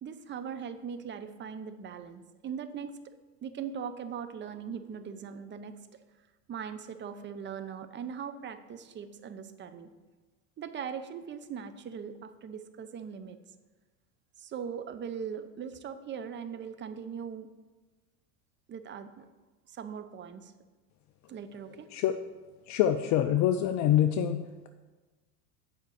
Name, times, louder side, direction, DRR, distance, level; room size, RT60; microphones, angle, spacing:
voice 1, 0.0-3.0 3.4-6.0 6.5-9.9 10.6-13.4 14.4-17.5 18.7-19.3 19.7-20.5 21.3-21.9, right 7 dB, 25° right, 10 dB, 0.6 m, -40 dB
voice 2, 22.7-24.7, left 11 dB, 40° left, 8 dB, 0.5 m, -26 dB
8.1 x 5.3 x 6.4 m, 1.3 s
hypercardioid pair, 90°, 47 cm